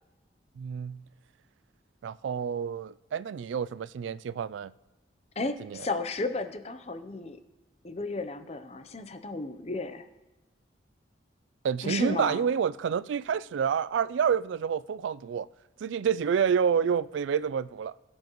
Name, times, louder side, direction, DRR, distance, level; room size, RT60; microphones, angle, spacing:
voice 1, 0.6-1.0 2.0-4.7 5.6-5.9 11.6-15.5 15.8-18.0, right 7 dB, 80° right, 0.3 m, -28 dB
voice 2, 5.4-7.4 7.8-10.0 11.8-12.5, left 3 dB, 35° left, 0.7 m, -33 dB
21.5 x 7.2 x 3.1 m
head